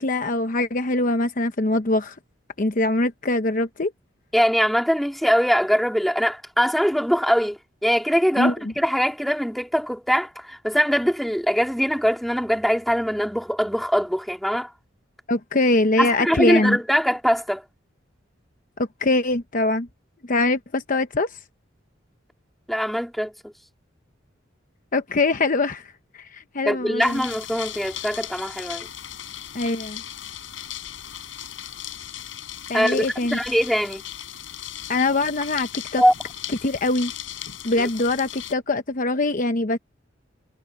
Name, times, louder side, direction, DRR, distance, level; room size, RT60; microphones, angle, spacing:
voice 1, 0.0-2.2 2.6-3.9 8.4-8.7 15.3-16.8 18.8-19.9 20.2-21.4 24.9-27.3 29.5-30.0 32.7-33.4 34.9-36.0 36.6-37.1 37.6-39.8, left 2 dB, 45° left, 0.9 m, -23 dB
voice 2, 4.3-14.7 16.0-17.6 22.7-23.5 26.7-28.9 32.7-33.1 33.3-34.0 36.0-36.1 37.8-37.9, equal, ahead, 3.9 m, -22 dB
sound 1, 27.0-38.5, left 11 dB, 85° left, 6.8 m, -37 dB
head